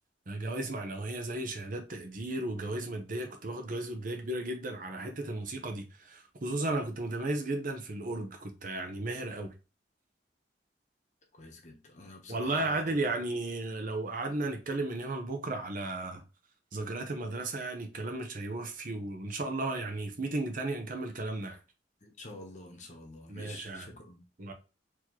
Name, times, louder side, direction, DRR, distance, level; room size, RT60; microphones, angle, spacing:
voice 1, 0.3-9.5 12.3-16.2 16.7-21.6 23.3-23.9 24.4-24.5, right 2 dB, 45° right, 0.8 m, -34 dB
voice 2, 11.3-13.1 22.0-24.2, left 2 dB, 40° left, 1.0 m, -48 dB
4.2 x 3.0 x 2.9 m
head